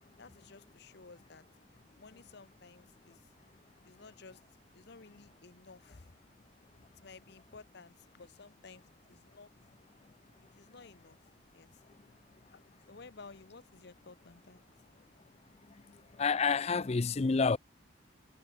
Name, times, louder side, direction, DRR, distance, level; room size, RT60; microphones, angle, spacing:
voice 1, 0.2-1.4 2.0-3.3 3.8-4.4 4.7-6.1 7.0-9.5 10.5-11.2 11.5-11.8 12.5-12.6 12.9-14.6, left 4 dB, 55° left, 0.9 m, -54 dB
voice 2, 16.2-17.6, left 4 dB, 30° left, 0.4 m, -28 dB
head